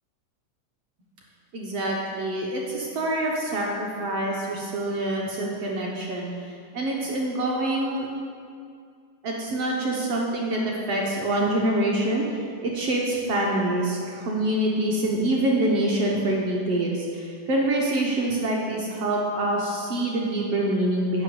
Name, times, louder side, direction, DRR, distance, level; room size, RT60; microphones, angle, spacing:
voice 1, 1.5-6.3 6.7-8.1 9.2-12.2 12.6-21.2, right 1 dB, 65° right, -2 dB, 1.5 m, -25 dB
8.5 x 5.8 x 7.8 m, 2.3 s
omnidirectional pair, 3.9 m